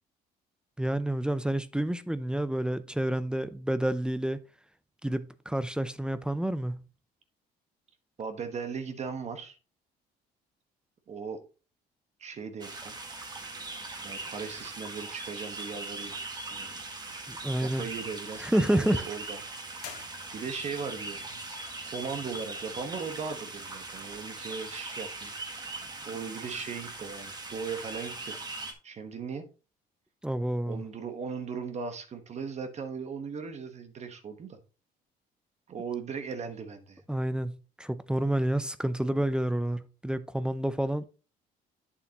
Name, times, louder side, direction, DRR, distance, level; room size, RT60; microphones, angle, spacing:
voice 1, 0.8-4.4 5.0-6.8 17.3-17.8 18.4-19.0 30.2-30.8 37.1-41.0, right 1 dB, 5° right, 0.5 m, -29 dB
voice 2, 8.2-9.6 11.1-11.4 12.2-12.9 13.7-13.8 14.0-16.2 16.5-16.7 17.6-19.4 20.3-21.4 21.8-25.7 26.0-28.4 28.8-29.4 30.7-34.6 35.7-37.0, right 5 dB, 40° right, 1.3 m, -38 dB
sound 1, 12.6-28.7, right 2 dB, 25° right, 1.7 m, -40 dB
sound 2, 19.8-20.8, left 9 dB, 70° left, 1.8 m, -46 dB
8.8 x 7.1 x 2.9 m
cardioid pair, 110°, 17 cm